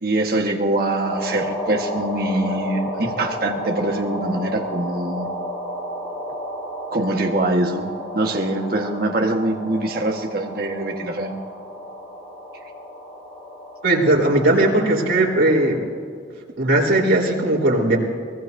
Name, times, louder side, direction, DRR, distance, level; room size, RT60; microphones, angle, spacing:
voice 1, 0.0-5.3 6.9-7.9 8.1-11.3, right 1 dB, 50° right, 2 dB, 1.4 m, -23 dB
sound 1, 1.0-15.8, equal, 50° left, 4.7 m, -32 dB
voice 2, 13.8-15.8 16.6-18.0, right 1 dB, 85° right, -3 dB, 3.7 m, -18 dB
23.5 x 19.5 x 2.7 m, 2.2 s
head